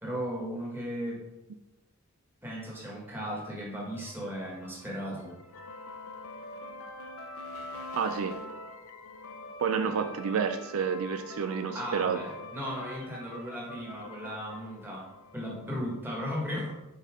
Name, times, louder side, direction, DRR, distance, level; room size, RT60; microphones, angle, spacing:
voice 1, 0.0-1.2 2.4-5.3 9.8-9.9 11.7-15.1 15.3-16.7, equal, 10° right, -3 dB, 1.6 m, -36 dB
sound 1, 4.0-15.7, left 2 dB, 75° left, 0.7 m, -44 dB
voice 2, 7.9-8.4 9.6-12.2, right 6 dB, 75° right, 9 dB, 0.4 m, -29 dB
6.7 x 4.2 x 3.7 m, 0.96 s
head